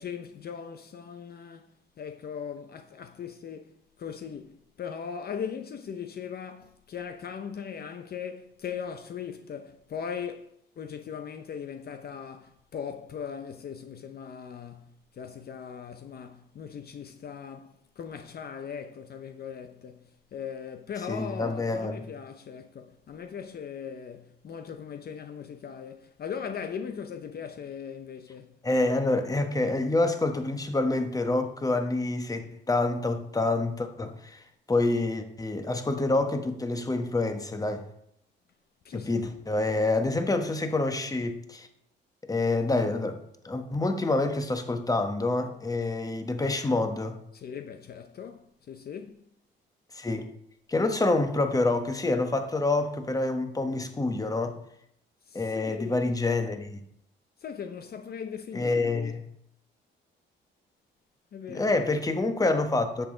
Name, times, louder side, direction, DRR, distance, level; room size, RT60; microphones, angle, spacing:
voice 1, 0.0-1.7 2.0-28.6 38.8-39.4 47.3-49.2 55.2-56.1 57.4-59.2 61.3-61.7, left 7 dB, 50° left, 0.7 m, -39 dB
voice 2, 21.1-22.0 28.6-37.8 38.9-41.7 42.3-43.2 43.4-47.2 49.9-50.3 50.7-54.6 55.3-56.8 58.5-59.2 61.5-63.1, left 2 dB, 20° left, 1.2 m, -27 dB
10.0 x 7.2 x 3.8 m
cardioid pair, 90°, 20 cm